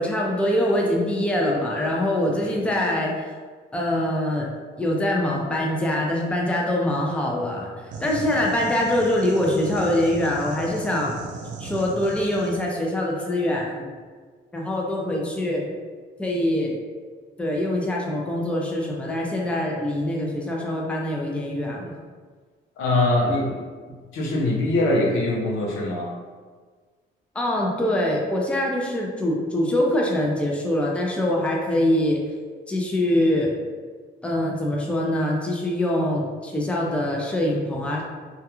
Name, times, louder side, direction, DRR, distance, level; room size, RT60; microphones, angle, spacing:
voice 1, 0.0-3.2 3.7-4.5 4.8-7.7 8.0-11.2 11.6-13.9 14.5-15.8 16.2-16.8 17.4-22.0 27.3-32.2 32.7-33.5 34.2-38.0, left 1 dB, 5° left, -2 dB, 0.5 m, -24 dB
sound 1, 7.9-12.7, right 3 dB, 65° right, 0.4 m, -37 dB
voice 2, 22.8-23.6 24.1-26.1, left 2 dB, 85° left, -3 dB, 0.6 m, -22 dB
2.3 x 2.2 x 2.9 m, 1.5 s
cardioid pair, 90°, 20 cm